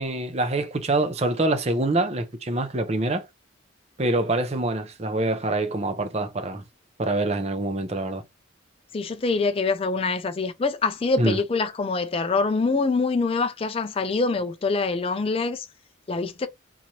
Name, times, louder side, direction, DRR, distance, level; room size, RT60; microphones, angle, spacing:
voice 1, 0.0-3.3 4.0-6.6 7.0-8.2 11.2-11.4, right 2 dB, 30° right, 0.6 m, -25 dB
voice 2, 8.9-15.7 16.1-16.5, left 4 dB, 30° left, 0.4 m, -25 dB
3.9 x 3.0 x 2.8 m
head